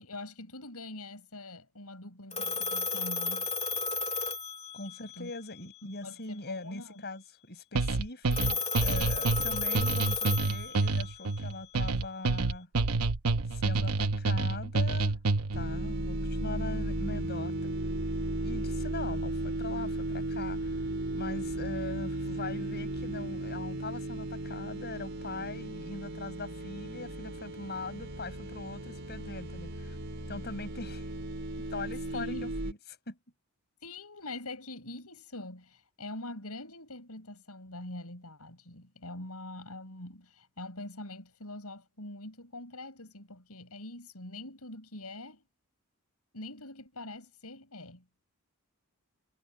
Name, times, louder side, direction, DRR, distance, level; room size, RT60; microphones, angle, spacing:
voice 1, 0.0-3.5 4.9-5.3 5.8-7.1 32.1-32.5 33.8-45.4 46.3-48.1, left 2 dB, 85° left, 6.9 m, -44 dB
Telephone, 2.3-5.2 8.3-11.1, left 4 dB, 30° left, 2.1 m, -33 dB
voice 2, 4.7-12.7 13.5-15.2 15.5-17.7 18.4-20.8 21.1-30.0 30.3-31.1 31.7-32.8 33.1-33.2, left 3 dB, 50° left, 7.5 m, -41 dB
sound 1, 7.8-15.7, right 3 dB, 85° right, 0.9 m, -28 dB
sound 2, 15.5-32.7, right 1 dB, 55° right, 4.7 m, -35 dB
head